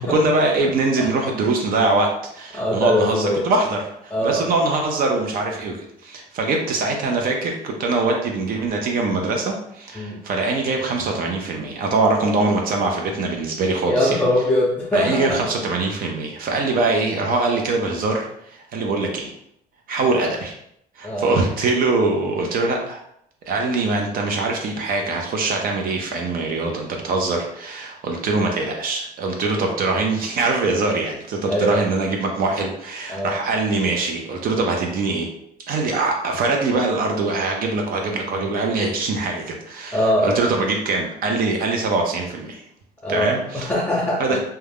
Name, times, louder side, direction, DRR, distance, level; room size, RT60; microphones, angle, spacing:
voice 1, 0.0-14.2 14.9-19.3 19.9-20.6 21.0-23.0 23.5-35.3 35.7-42.6 43.1-43.7 44.2-44.4, right 3 dB, 60° right, 1 dB, 0.5 m, -23 dB
voice 2, 2.5-3.5 4.1-4.5 10.0-10.2 13.9-15.4 21.0-21.4 31.5-31.9 33.1-33.4 39.9-40.4 43.0-44.4, left 1 dB, 10° left, -4 dB, 0.6 m, -22 dB
2.4 x 2.2 x 3.4 m, 0.74 s
cardioid pair, 110°, 17 cm